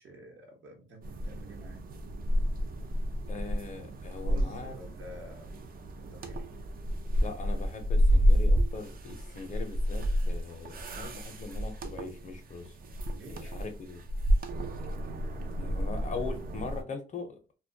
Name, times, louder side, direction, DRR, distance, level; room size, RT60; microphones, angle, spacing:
voice 1, 0.0-1.8 4.2-5.6 5.9-6.5 13.1-13.7, right 1 dB, 70° right, 0.9 m, -49 dB
sound 1, 1.0-16.8, equal, 45° right, 0.5 m, -30 dB
voice 2, 3.3-4.8 7.2-12.8 13.3-14.0 15.5-17.4, left 4 dB, 40° left, 0.6 m, -41 dB
2.2 x 2.2 x 2.6 m
cardioid pair, 90°, 20 cm